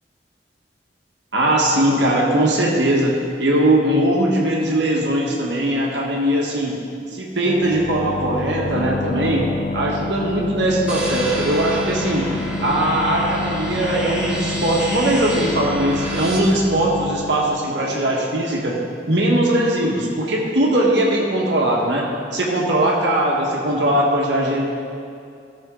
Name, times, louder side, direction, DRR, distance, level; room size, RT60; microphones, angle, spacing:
voice 1, 1.3-6.7 7.1-9.5 9.7-12.3 12.6-18.8 19.1-24.6, right 1 dB, 75° right, -3 dB, 1.5 m, -20 dB
sound 1, 7.5-18.9, left 2 dB, 40° left, 0.3 m, -29 dB
sound 2, 10.9-16.4, equal, 10° right, 1.9 m, -29 dB
14.5 x 6.8 x 3.8 m, 2.4 s
head